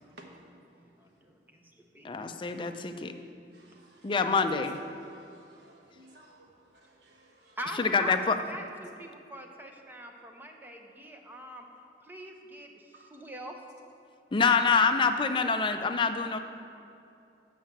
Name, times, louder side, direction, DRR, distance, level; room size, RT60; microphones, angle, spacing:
voice 1, 0.0-0.9 3.5-4.4 4.9-7.6 12.9-13.3, right 1 dB, 65° right, 1 dB, 1.1 m, -57 dB
voice 2, 0.7-2.1 7.6-11.6 12.0-13.6, equal, 10° right, 3 dB, 0.6 m, -43 dB
voice 3, 2.0-3.1 4.0-4.8 7.8-8.3 14.3-16.4, left 5 dB, 25° left, 7 dB, 0.4 m, -26 dB
7.3 x 5.6 x 7.2 m, 2.6 s
head